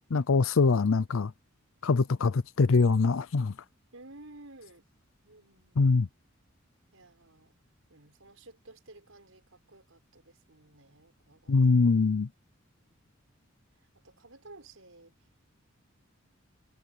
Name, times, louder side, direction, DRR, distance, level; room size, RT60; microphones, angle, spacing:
voice 1, 0.1-1.3 1.8-3.5 5.8-6.1 11.5-12.3, left 4 dB, 80° left, 0.6 m, -23 dB
voice 2, 3.9-4.9 5.2-5.8 6.9-7.6 7.9-11.8 12.8-13.0 13.8-15.3, right 2 dB, 85° right, 5.8 m, -54 dB
head